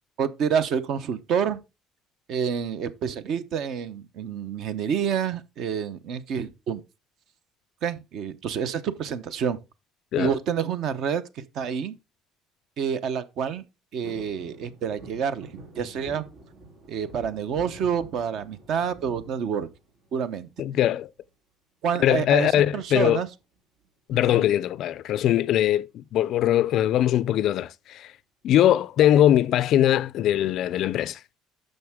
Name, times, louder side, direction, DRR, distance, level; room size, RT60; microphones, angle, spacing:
voice 1, 0.2-1.6 2.3-6.8 7.8-9.6 10.2-11.9 12.8-13.6 13.9-15.5 15.8-16.3 16.9-19.7 20.1-20.5 21.8-23.3 24.3-24.4, right 7 dB, 50° right, 0.8 m, -28 dB
sound 1, 14.0-20.2 20.6-21.2 22.5-22.9 23.2-23.3 23.6-23.9 24.7-25.6 26.1-26.2, right 2 dB, 75° right, 3.0 m, -47 dB
voice 2, 20.6-21.1 22.0-23.2 24.1-28.1 28.4-31.2, left 12 dB, 50° left, 0.4 m, -21 dB
10.5 x 6.6 x 3.6 m
cardioid pair, 165°, 0 cm